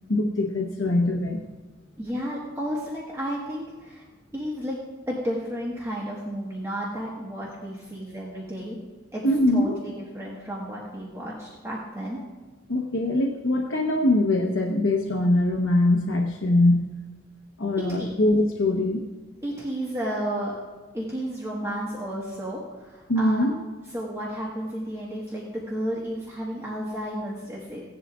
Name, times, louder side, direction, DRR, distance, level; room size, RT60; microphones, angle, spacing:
voice 1, 0.1-1.4 9.2-9.8 12.7-16.9 17.6-19.0 23.1-23.5, left 1 dB, 70° left, 1 dB, 1.0 m, -22 dB
voice 2, 2.0-4.0 4.3-8.8 9.1-9.2 9.5-12.2 17.8-18.2 19.4-20.5 20.9-23.4 23.9-27.8, equal, 15° right, -5 dB, 1.4 m, -32 dB
16.5 x 11.0 x 2.4 m, 1.3 s
head